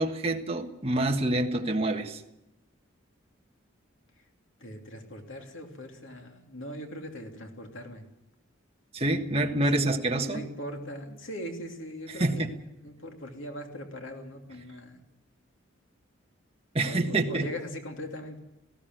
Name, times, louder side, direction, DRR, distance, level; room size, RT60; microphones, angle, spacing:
voice 1, 0.0-2.2 8.9-10.4 12.2-12.5 16.7-17.5, right 2 dB, 30° right, 3 dB, 1.6 m, -27 dB
voice 2, 4.6-8.0 9.7-12.5 12.8-15.0 16.8-18.4, equal, 70° left, 3 dB, 2.9 m, -40 dB
18.5 x 16.5 x 9.3 m, 0.87 s
head